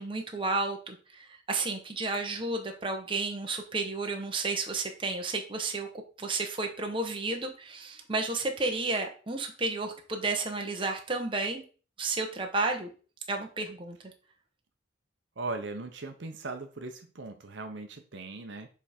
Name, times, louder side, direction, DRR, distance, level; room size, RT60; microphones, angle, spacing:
voice 1, 0.0-5.9 6.2-11.6 12.0-12.9 13.3-14.0, right 3 dB, 25° right, 3 dB, 0.9 m, -32 dB
voice 2, 15.4-18.7, right 3 dB, 65° right, 6 dB, 0.7 m, -39 dB
7.0 x 3.4 x 4.3 m, 0.38 s
head